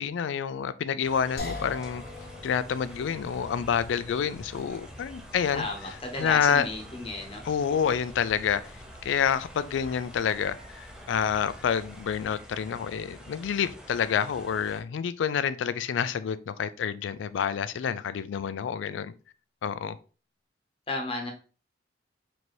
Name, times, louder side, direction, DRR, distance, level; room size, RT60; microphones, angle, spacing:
voice 1, 0.0-2.0 2.4-5.6 6.2-6.7 7.5-8.6 9.0-19.1 19.6-20.0, left 7 dB, 80° left, 0.3 m, -28 dB
sound 1, 1.0-14.8, equal, 5° right, 0.6 m, -48 dB
sound 2, 1.4-14.4, left 3 dB, 55° left, 0.8 m, -46 dB
Telephone, 2.8-12.5, equal, 80° right, 0.9 m, -53 dB
voice 2, 5.5-7.4 20.9-21.3, left 2 dB, 30° left, 0.8 m, -33 dB
4.3 x 2.7 x 3.0 m
head